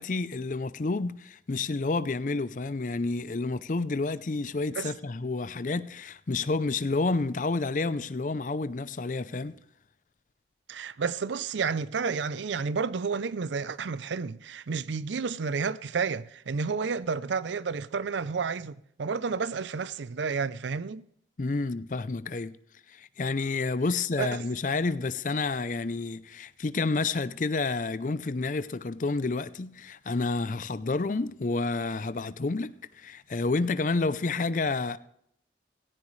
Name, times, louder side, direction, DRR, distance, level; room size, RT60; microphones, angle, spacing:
voice 1, 0.0-9.5 21.4-22.5 22.9-35.0, left 3 dB, 45° left, 0.5 m, -29 dB
voice 2, 10.7-21.0 24.2-24.4, right 5 dB, 80° right, 0.5 m, -31 dB
16.5 x 14.5 x 3.2 m
head